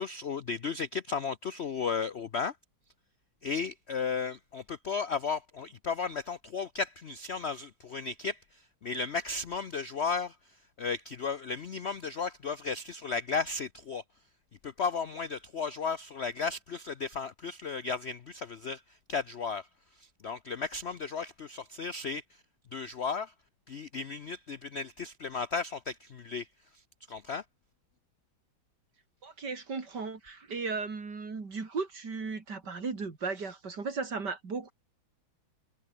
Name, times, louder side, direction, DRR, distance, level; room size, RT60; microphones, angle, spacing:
voice 1, 0.0-2.5 3.4-10.4 10.8-14.0 14.6-18.8 19.1-19.7 20.0-22.2 22.7-23.3 23.7-26.5 27.1-27.4, left 5 dB, 70° left, 0.6 m, -34 dB
voice 2, 29.2-34.7, right 4 dB, 55° right, 3.7 m, -36 dB
omnidirectional pair, 2.2 m